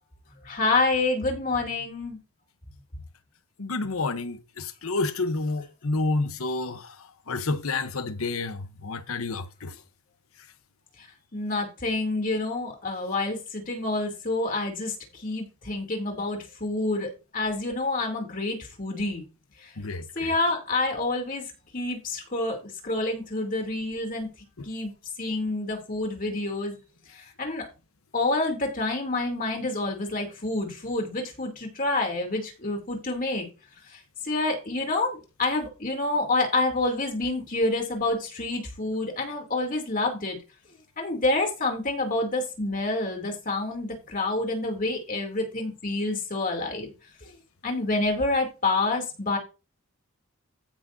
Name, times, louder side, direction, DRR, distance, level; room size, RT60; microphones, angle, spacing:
voice 1, 0.4-2.2 11.3-14.9 15.2-19.2 20.2-21.4 21.7-22.6 22.8-24.3 24.6-24.9 25.2-26.8 27.4-27.7 28.1-33.5 34.2-40.4 41.0-46.9 47.6-49.4, left 2 dB, 40° left, 2.9 m, -28 dB
voice 2, 3.6-7.0 7.3-9.7 19.8-20.3 24.6-24.7, left 3 dB, 85° left, 0.9 m, -29 dB
15.0 x 6.0 x 2.7 m
head